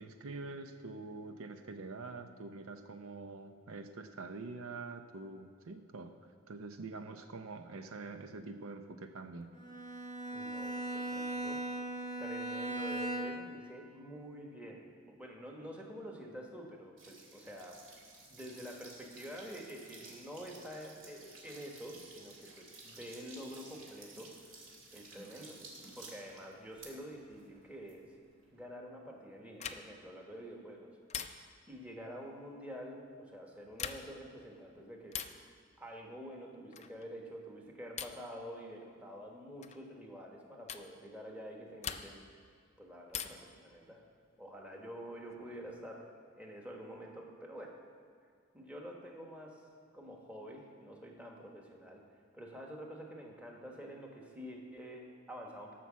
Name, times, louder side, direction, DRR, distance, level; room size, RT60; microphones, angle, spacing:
voice 1, 0.0-6.1 6.5-9.5, right 3 dB, 80° right, 7 dB, 0.6 m, -45 dB
Bowed string instrument, 9.6-13.6, right 1 dB, 35° right, 1.1 m, -38 dB
voice 2, 10.3-11.6 12.2-17.8 18.3-24.6 24.9-25.7 26.0-28.0 28.5-30.9 31.7-35.2 35.8-42.2 42.8-44.0 44.4-46.1 46.4-47.8 48.5-49.6 49.9-52.0 52.3-55.7, equal, 5° right, 0 dB, 1.2 m, -48 dB
sound 1, 17.0-28.6, right 3 dB, 65° right, 2.3 m, -54 dB
sound 2, 29.6-30.1 31.1-31.7 33.6-34.3 35.1-35.5 36.7-37.1 38.0-38.3 39.6-39.8 40.7-40.9 41.8-42.4 43.1-43.6 45.0-45.7, left 8 dB, 30° left, 0.4 m, -43 dB
12.5 x 5.9 x 7.3 m, 2.2 s
head